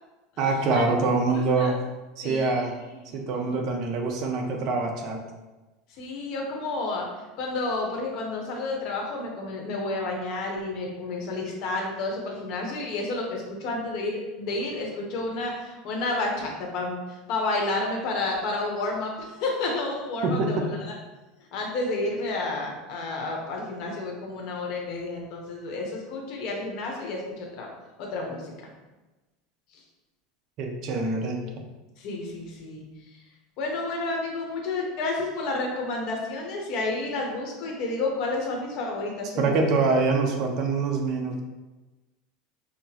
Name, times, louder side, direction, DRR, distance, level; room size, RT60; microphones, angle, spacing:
voice 1, 0.4-1.7 2.2-2.7 3.1-5.2 20.2-20.5 30.6-31.4 39.4-41.4, right 3 dB, 40° right, 2 dB, 0.6 m, -25 dB
voice 2, 1.3-1.8 2.2-3.2 6.0-7.0 7.4-20.9 21.5-27.7 28.0-28.5 32.0-32.8 33.1-33.2 33.6-39.5, left 2 dB, 50° left, -1 dB, 0.9 m, -30 dB
5.8 x 2.0 x 2.8 m, 1.1 s
supercardioid pair, 160°, 0 cm